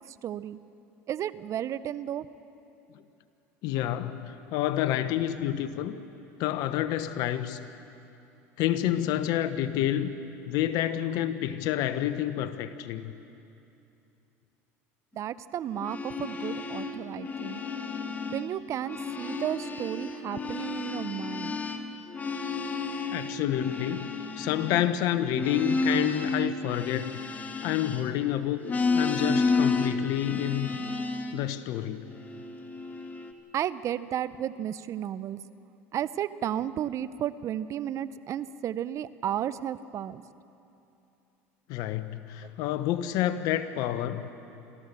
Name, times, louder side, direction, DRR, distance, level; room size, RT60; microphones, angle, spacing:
voice 1, 0.2-0.6 1.1-2.3 15.1-17.6 18.3-21.6 33.5-35.4 35.9-40.2 42.4-42.5, right 10 dB, 45° right, 16 dB, 0.7 m, -33 dB
voice 2, 3.6-6.0 6.4-7.7 8.6-10.1 10.5-13.1 23.1-24.1 24.4-27.2 27.6-28.6 28.9-30.7 31.3-32.1 41.7-44.3, left 12 dB, 65° left, 11 dB, 1.1 m, -29 dB
sound 1, 15.7-18.5 18.8-28.3 28.6-31.4 32.0-33.3, left 3 dB, 25° left, 1.7 m, -31 dB
27.0 x 14.5 x 7.0 m, 2.8 s
supercardioid pair, 95°, 7 cm